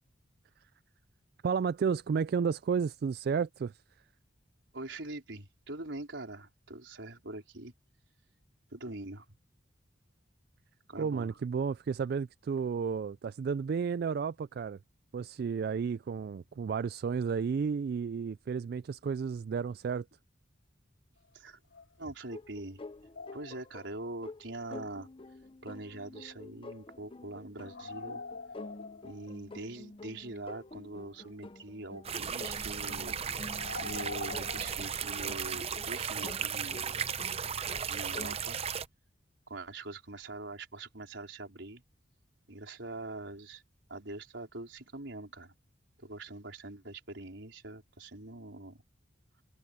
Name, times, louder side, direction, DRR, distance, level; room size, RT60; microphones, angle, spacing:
voice 1, 1.4-3.8 11.0-14.8 15.1-20.1, right 6 dB, 55° right, 0.3 m, -32 dB
voice 2, 4.7-7.7 8.7-9.3 10.9-11.3 21.3-21.6 22.0-22.8 23.3-25.1 25.6-28.2 29.0-33.2 33.8-37.0 37.7-38.6 39.5-41.8 42.5-43.6 43.9-45.5 46.0-48.8, right 2 dB, 80° right, 4.3 m, -43 dB
sound 1, 21.2-21.3 21.7-22.6 22.9-24.0 27.6-29.6 30.3-30.4 30.7-30.8 31.2-31.5 32.4-32.8 33.4-35.4 37.7-37.8 38.5-38.6, left 3 dB, 90° left, 2.8 m, -45 dB
sound 2, 22.3-38.4, left 2 dB, 30° left, 0.7 m, -49 dB
sound 3, 32.0-38.9, right 7 dB, 35° right, 0.7 m, -35 dB
head